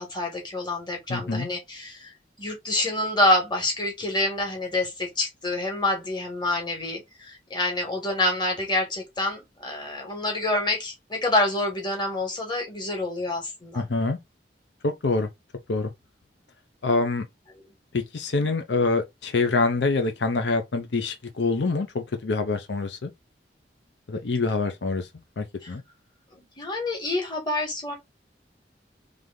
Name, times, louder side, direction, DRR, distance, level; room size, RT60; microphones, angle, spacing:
voice 1, 0.0-2.1 2.4-13.9 25.6-25.7 26.3-28.0, left 1 dB, 25° left, 1.6 m, -27 dB
voice 2, 1.1-1.5 13.7-14.2 14.8-15.3 15.7-15.9 16.8-17.3 17.9-23.1 24.1-25.1 25.4-25.8, left 3 dB, 80° left, 0.7 m, -25 dB
3.4 x 3.3 x 3.7 m
head